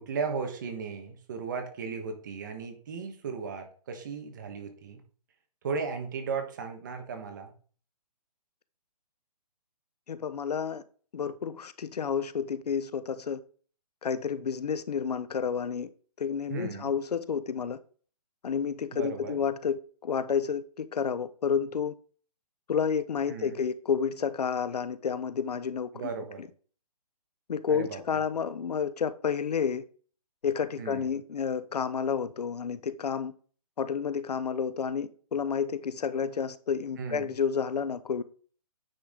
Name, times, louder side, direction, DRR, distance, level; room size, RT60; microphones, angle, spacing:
voice 1, 0.0-5.0 5.6-7.5 16.5-16.9 18.9-19.4 23.3-23.6 25.9-26.4 27.7-28.2 30.8-31.1 37.0-37.4, right 5 dB, 30° right, 1.3 m, -36 dB
voice 2, 10.1-10.8 11.1-13.4 14.0-15.9 16.2-17.8 18.4-21.9 22.7-25.9 27.5-29.8 30.4-33.3 33.8-38.2, left 6 dB, 75° left, 0.7 m, -30 dB
9.2 x 4.7 x 3.8 m
hypercardioid pair, 170°, 20 cm